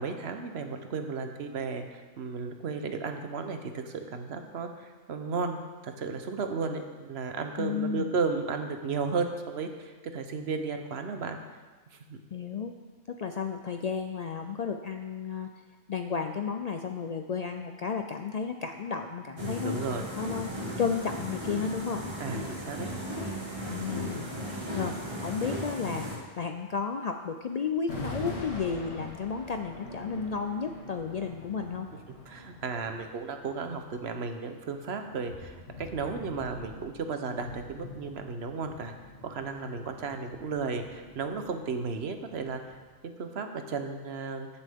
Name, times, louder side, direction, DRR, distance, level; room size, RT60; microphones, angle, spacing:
voice 1, 0.0-5.6 5.8-11.4 12.1-12.2 19.4-20.1 22.2-22.9 32.3-38.9 39.2-42.8 43.0-44.5, right 4 dB, 70° right, 6 dB, 1.1 m, -34 dB
voice 2, 7.6-8.1 12.3-12.7 13.1-15.5 15.9-19.8 20.2-20.5 20.8-22.0 23.7-24.3 24.7-25.0 25.2-26.1 26.4-31.9, left 6 dB, 55° left, 5 dB, 0.4 m, -32 dB
sound 1, 19.4-26.2, equal, 25° right, 1.5 m, -36 dB
sound 2, 26.7-26.8 27.9-42.9, left 1 dB, 75° left, 2.2 m, -45 dB
15.0 x 7.2 x 3.6 m, 1.3 s
omnidirectional pair, 1.1 m